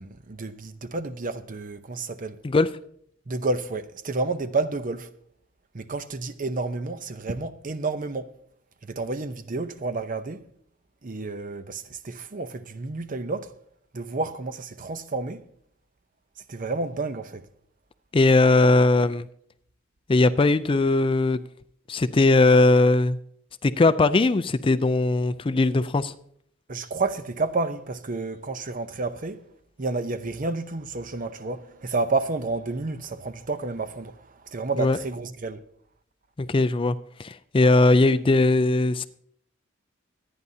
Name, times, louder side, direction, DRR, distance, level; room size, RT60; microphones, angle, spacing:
voice 1, 0.0-2.4 3.3-5.1 5.7-8.3 8.8-10.4 11.0-13.5 13.9-15.4 16.5-17.4 26.7-29.4 29.8-35.6, right 3 dB, 45° right, 0.7 m, -30 dB
voice 2, 18.1-19.3 20.1-21.4 21.9-23.2 23.6-26.1 34.8-35.0 36.4-39.1, left 2 dB, 25° left, 0.4 m, -19 dB
25.0 x 9.7 x 2.8 m
head